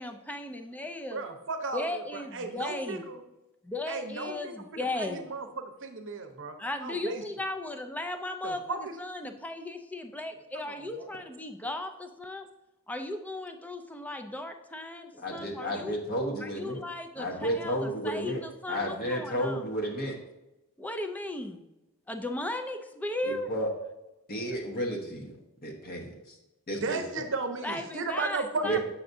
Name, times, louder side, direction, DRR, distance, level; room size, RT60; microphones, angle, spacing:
voice 1, 0.0-1.2 1.7-3.1 3.6-5.3 6.6-12.5 12.9-15.9 16.4-19.6 20.8-21.7 22.1-23.5 27.6-28.8, left 2 dB, 5° left, 6 dB, 0.4 m, -36 dB
voice 2, 1.1-3.2 3.9-6.5 6.8-7.2 8.4-9.0 10.5-11.1 26.8-28.8, right 3 dB, 60° right, 6 dB, 0.8 m, -35 dB
voice 3, 15.2-16.8 17.2-18.4 18.7-20.2 23.2-23.7 24.3-25.4 25.6-26.3 26.7-27.3 28.6-28.8, equal, 45° left, 0 dB, 1.0 m, -32 dB
8.0 x 5.9 x 2.6 m, 0.96 s
head